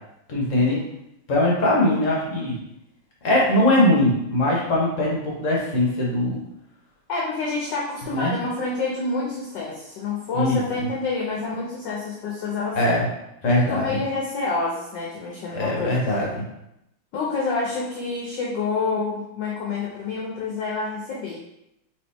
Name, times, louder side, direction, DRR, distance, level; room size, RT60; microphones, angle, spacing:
voice 1, 0.3-0.8 1.3-2.6 3.2-6.4 8.1-8.3 10.3-10.9 12.7-13.1 13.4-14.0 15.5-16.4, left 1 dB, 45° left, -3 dB, 1.1 m, -21 dB
voice 2, 7.1-12.8 13.6-16.2 17.1-21.4, left 3 dB, 65° left, -4 dB, 1.2 m, -28 dB
4.0 x 3.4 x 3.4 m, 0.84 s
omnidirectional pair, 2.4 m